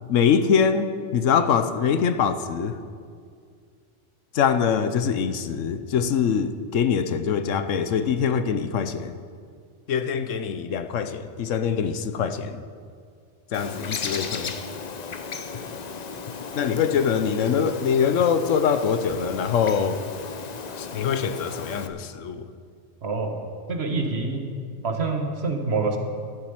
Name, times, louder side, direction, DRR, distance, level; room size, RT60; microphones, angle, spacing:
voice 1, 0.0-2.8 4.3-9.1 9.9-12.6 13.5-14.5 16.5-20.0 20.8-22.5, left 7 dB, 90° left, 10 dB, 1.1 m, -23 dB
Bird, 13.5-21.9, left 5 dB, 40° left, 0.7 m, -35 dB
voice 2, 23.0-23.4 23.7-24.5 24.8-26.0, right 3 dB, 60° right, 4 dB, 1.6 m, -26 dB
12.5 x 7.3 x 9.5 m, 2.1 s
omnidirectional pair, 1.3 m